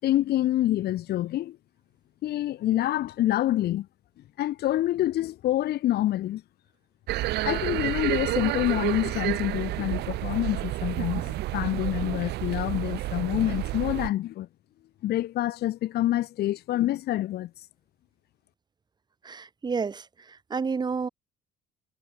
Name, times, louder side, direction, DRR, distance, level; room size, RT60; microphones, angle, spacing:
voice 1, 0.0-1.6 2.2-3.9 4.4-6.4 7.4-14.5 15.0-17.5, left 14 dB, 70° left, 7.8 m, -27 dB
sound 1, 7.1-14.1, right 17 dB, 80° right, 1.4 m, -30 dB
voice 2, 19.2-20.0 20.5-21.1, right 5 dB, 25° right, 1.2 m, -29 dB
cardioid pair, 110°, 17 cm